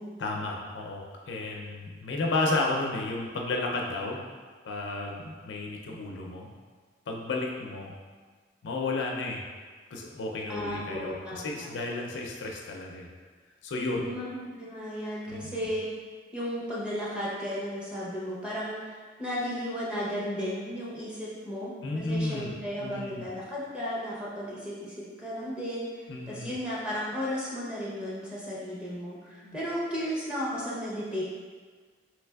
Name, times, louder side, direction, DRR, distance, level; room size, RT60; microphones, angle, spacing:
voice 1, 0.2-4.2 4.6-6.5 7.1-7.9 8.6-9.4 9.9-13.1 13.6-14.1 15.3-15.7 21.8-22.5 22.8-23.2 26.1-26.5 29.4-29.6, left 2 dB, 70° left, 0 dB, 0.4 m, -32 dB
voice 2, 10.5-11.7 13.9-15.8 16.3-18.8 19.2-25.9 26.3-31.2, equal, 5° right, -8 dB, 0.7 m, -34 dB
3.2 x 3.1 x 2.2 m, 1.5 s
head